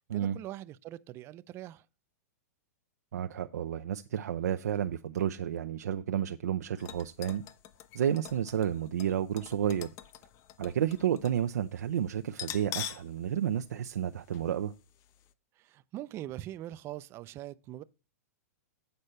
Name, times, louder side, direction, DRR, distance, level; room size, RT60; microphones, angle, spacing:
voice 1, 0.0-1.9 15.6-17.8, right 14 dB, 30° right, 0.4 m, -42 dB
voice 2, 3.1-7.4 7.9-9.9 10.6-14.7, right 9 dB, 80° right, 0.5 m, -31 dB
sound 1, 6.8-11.4 11.7-11.8 12.3-13.1 13.5-13.6 14.3-14.5 14.9-15.0, left 11 dB, 35° left, 0.6 m, -44 dB
8.1 x 4.4 x 6.5 m
hypercardioid pair, 135°, 9 cm